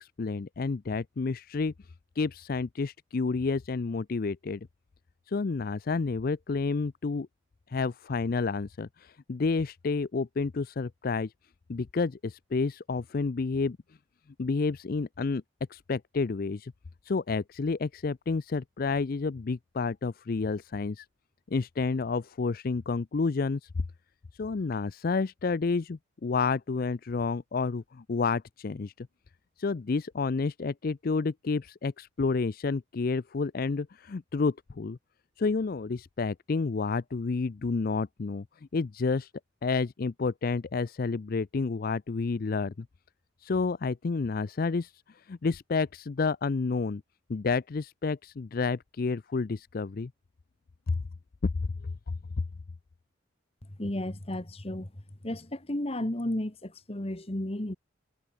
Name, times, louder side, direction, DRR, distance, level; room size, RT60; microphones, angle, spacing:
voice 1, 0.0-1.7 2.2-4.7 5.3-7.3 7.7-11.3 11.7-13.8 14.4-15.4 15.7-16.7 17.0-21.1 21.5-23.7 24.3-29.1 29.6-35.0 35.4-38.4 38.7-39.3 39.6-42.9 43.4-47.0 47.3-50.1 50.9-51.0, left 4 dB, 45° left, 0.4 m, -30 dB
voice 2, 53.8-54.9 55.2-57.8, left 1 dB, 30° left, 1.4 m, -33 dB
head